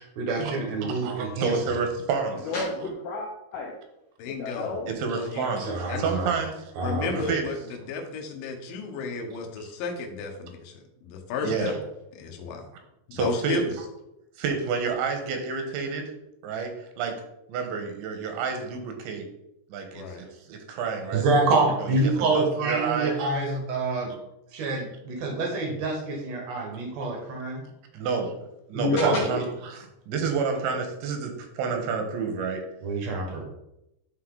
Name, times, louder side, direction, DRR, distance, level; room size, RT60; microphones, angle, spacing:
voice 1, 0.2-1.5 5.6-6.3 6.8-7.2 21.1-24.1 24.5-27.6 28.7-29.2 32.8-33.4, right 2 dB, 70° right, 1 dB, 1.6 m, -26 dB
voice 2, 0.8-2.6 4.9-6.7 7.3-7.5 11.4-11.8 13.1-13.7 14.4-16.1 16.4-17.2 17.5-19.3 19.7-21.5 21.8-23.6 27.9-28.3 28.7-32.6, right 5 dB, 85° right, 4 dB, 3.4 m, -29 dB
voice 3, 2.5-3.7 4.4-4.9 28.9-29.4, left 3 dB, 90° left, -1 dB, 1.8 m, -30 dB
voice 4, 4.2-4.9 5.2-5.5 5.9-6.0 6.8-11.7 12.2-12.6 13.1-13.6 19.9-20.3, left 4 dB, 70° left, 2 dB, 2.1 m, -33 dB
11.0 x 4.1 x 3.8 m, 0.85 s
omnidirectional pair, 5.2 m